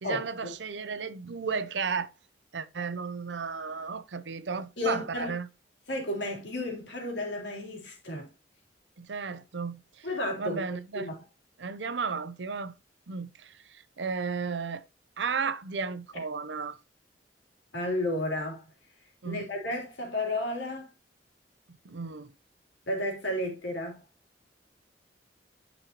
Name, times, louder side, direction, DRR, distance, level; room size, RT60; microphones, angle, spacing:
voice 1, 0.0-2.1 2.5-5.5 9.0-10.1 10.4-11.1 11.6-12.7 13.1-14.8 15.2-16.8 19.2-19.5 21.8-22.3, right 5 dB, 85° right, 0.7 m, -34 dB
voice 2, 4.8-5.3 5.9-8.3 10.0-10.6 10.9-11.2 17.7-18.6 19.2-20.9 22.9-24.0, left 1 dB, 90° left, 3.2 m, -32 dB
9.8 x 5.5 x 2.9 m
head